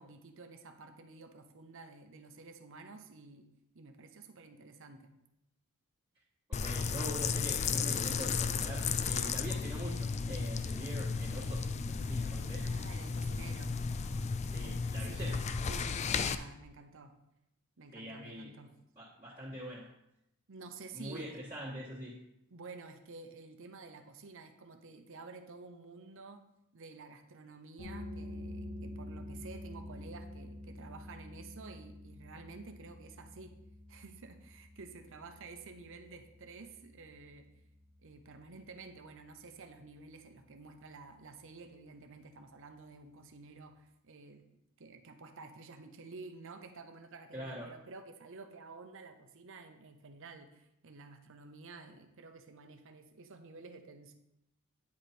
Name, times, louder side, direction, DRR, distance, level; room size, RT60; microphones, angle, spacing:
voice 1, 0.0-3.5 3.7-5.1 12.6-13.8 15.0-17.1 17.8-18.7 20.5-21.4 22.5-26.5 26.7-33.5 33.9-37.5 38.0-44.4 44.8-54.1, right 3 dB, 60° right, 7 dB, 0.8 m, -51 dB
sound 1, 6.5-16.4, left 5 dB, 30° left, 0.3 m, -34 dB
voice 2, 6.5-12.7 14.5-15.4 17.9-18.5 19.0-19.9 20.9-22.2 47.3-47.7, equal, 20° right, -9 dB, 1.6 m, -44 dB
sound 2, 27.8-39.2, left 1 dB, 55° left, 1.6 m, -48 dB
9.4 x 5.1 x 4.3 m, 0.83 s
head